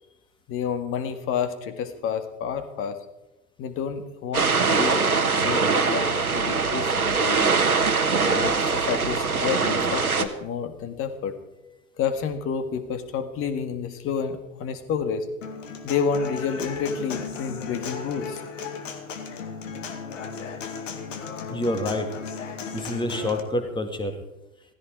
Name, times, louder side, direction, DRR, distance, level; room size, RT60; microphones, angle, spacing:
voice 1, 0.5-3.0 3.6-5.0 5.3-7.6 8.2-11.4 12.0-15.3 15.8-18.4, left 6 dB, 30° left, 10 dB, 1.9 m, -29 dB
sound 1, 4.3-10.2, right 4 dB, 85° right, 1.4 m, -22 dB
Human voice / Acoustic guitar, 15.4-23.4, left 5 dB, 60° left, 2.1 m, -35 dB
voice 2, 21.5-22.1 22.7-24.2, left 1 dB, 10° left, 7 dB, 2.1 m, -27 dB
17.0 x 15.0 x 4.8 m, 0.94 s
figure-of-eight pair, 90°, 42 cm